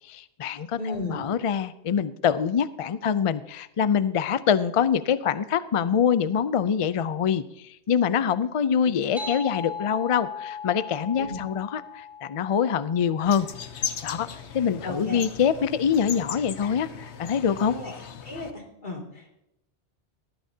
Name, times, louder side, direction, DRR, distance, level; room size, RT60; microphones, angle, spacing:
voice 1, 0.1-7.4 7.9-13.5 14.0-14.3 14.5-16.9 17.2-17.8, left 7 dB, 60° left, 15 dB, 0.3 m, -24 dB
voice 2, 0.7-1.3 8.8-9.3 11.1-11.4 14.8-15.2 17.7-18.0 18.2-19.4, left 2 dB, 45° left, 0 dB, 2.6 m, -36 dB
sound 1, 9.2-14.1, left 5 dB, ahead, 2.7 m, -38 dB
sound 2, 13.3-18.5, left 7 dB, 85° left, 1.1 m, -37 dB
18.5 x 12.5 x 2.8 m, 0.83 s
omnidirectional pair, 1.1 m